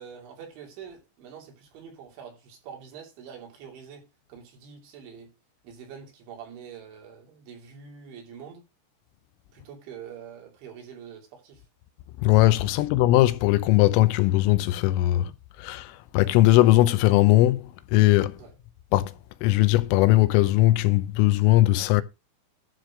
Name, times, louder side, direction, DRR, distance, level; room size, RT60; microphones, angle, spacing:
voice 1, 0.0-5.3 5.6-8.7 9.5-11.6 12.8-12.9 18.4-18.6, right 7 dB, 70° right, 5.1 m, -45 dB
voice 2, 12.2-15.3 15.6-18.4 18.9-19.1 19.4-22.0, left 16 dB, 90° left, 3.4 m, -20 dB
12.0 x 4.5 x 6.2 m
omnidirectional pair, 5.8 m